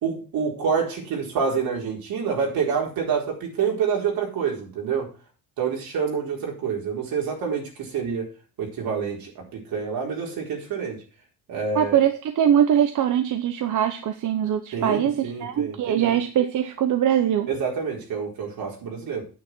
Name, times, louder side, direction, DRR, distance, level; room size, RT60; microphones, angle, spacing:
voice 1, 0.0-5.1 5.6-8.3 8.6-11.0 11.5-12.0 14.7-16.2 17.5-19.2, right 6 dB, 85° right, 0 dB, 4.4 m, -27 dB
voice 2, 11.7-17.5, right 9 dB, 60° right, 7 dB, 1.0 m, -22 dB
9.4 x 9.1 x 4.5 m, 0.35 s
cardioid pair, 155°, 35 cm